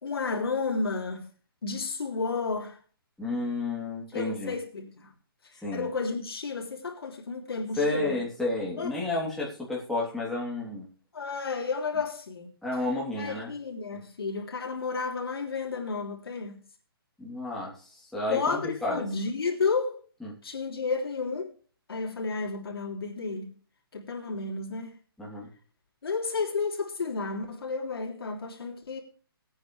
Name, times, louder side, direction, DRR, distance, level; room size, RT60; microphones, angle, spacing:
voice 1, 0.0-1.3 1.6-2.8 4.1-5.1 5.5-8.2 8.8-8.9 11.1-12.5 13.2-16.6 18.3-20.0 20.4-21.5 21.9-23.5 23.9-24.9 26.0-29.0, left 4 dB, 80° left, 3.2 m, -32 dB
voice 2, 3.2-4.5 5.6-5.9 7.8-10.9 12.6-13.5 17.2-17.7 18.1-19.1 20.2-20.4 25.2-25.5, left 2 dB, ahead, 3.1 m, -31 dB
19.5 x 9.1 x 3.3 m
hypercardioid pair, 165°, 13 cm